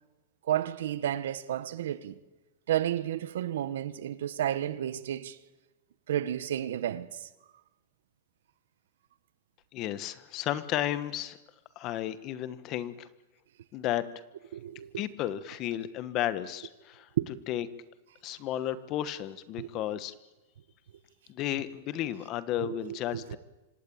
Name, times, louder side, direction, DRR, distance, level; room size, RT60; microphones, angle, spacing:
voice 1, 0.5-2.2 2.7-5.4 6.1-7.3 14.5-15.0 17.2-17.3 19.6-19.7 22.6-22.8 23.1-23.4, right 11 dB, 80° right, 1.3 m, -31 dB
voice 2, 9.7-11.4 11.7-13.1 13.7-14.2 15.0-17.1 17.5-17.7 18.2-20.1 21.3-23.4, left 12 dB, 30° left, 1.2 m, -33 dB
26.0 x 17.5 x 8.7 m
supercardioid pair, 160°, 0 cm